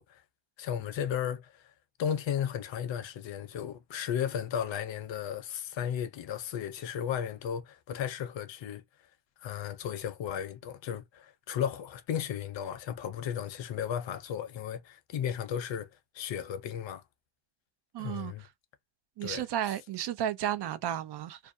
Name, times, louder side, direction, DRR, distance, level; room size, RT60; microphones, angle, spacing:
voice 1, 0.6-1.6 2.0-8.8 9.4-15.9 16.1-17.0 18.0-18.5 19.2-19.4, left 9 dB, 70° left, 0.7 m, -34 dB
voice 2, 17.9-18.3 19.2-21.4, right 11 dB, 60° right, 0.6 m, -33 dB
2.5 x 2.3 x 2.6 m
cardioid pair, 85°, 46 cm